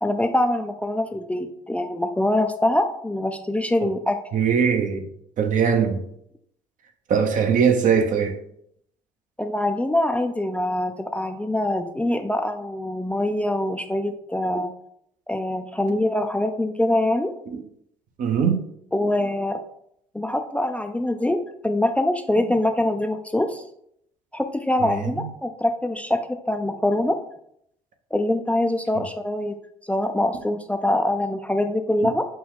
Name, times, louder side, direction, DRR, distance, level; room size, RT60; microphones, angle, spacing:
voice 1, 0.0-4.2 9.4-14.7 15.3-17.3 18.9-19.6 20.1-23.6 24.3-27.2 28.1-29.6 29.8-32.3, left 1 dB, 10° left, 0.4 m, -24 dB
voice 2, 4.3-5.1 5.4-6.0 7.1-8.4 17.5-17.6 18.2-18.6 24.8-25.3 28.9-29.1, right 7 dB, 50° right, 0.7 m, -21 dB
5.2 x 2.3 x 3.6 m
hypercardioid pair, 60°, 17 cm